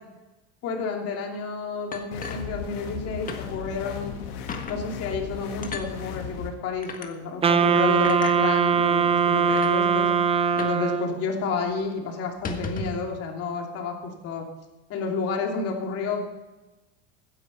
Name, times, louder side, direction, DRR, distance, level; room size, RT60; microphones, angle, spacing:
voice 1, 0.6-4.1 4.7-10.1 10.6-14.0 14.2-14.4 14.9-16.3, left 4 dB, 45° left, 1 dB, 3.0 m, -30 dB
sound 1, 1.9-3.0 3.3-3.4 3.8-4.0 4.5-4.8 5.6-5.9 6.8-7.1 8.0-8.4 9.1-9.2 9.5-9.7 10.6-10.8 11.1-11.2 11.5-11.7 12.3-13.1, left 4 dB, 25° left, 1.6 m, -35 dB
sound 2, 2.1-6.5, left 7 dB, 75° left, 2.3 m, -36 dB
Wind instrument woodwind instrument, 7.4-11.3, right 6 dB, 15° right, 0.7 m, -21 dB
15.5 x 9.8 x 5.6 m, 1.1 s
supercardioid pair, 130°, 33 cm